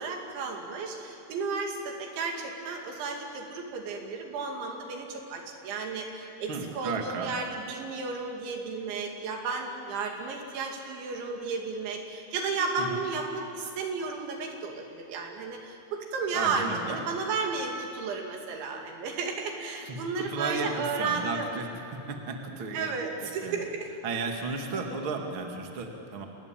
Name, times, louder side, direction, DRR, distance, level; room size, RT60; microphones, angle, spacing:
voice 1, 0.0-21.6 22.7-23.9 24.7-25.0, right 4 dB, 75° right, 2 dB, 4.8 m, -33 dB
voice 2, 6.5-7.4 12.8-13.0 16.3-17.0 19.8-21.7 22.1-22.9 23.2-23.6 24.0-26.3, right 4 dB, 40° right, 3 dB, 2.1 m, -34 dB
28.0 x 20.5 x 9.0 m, 2.7 s
omnidirectional pair, 5.4 m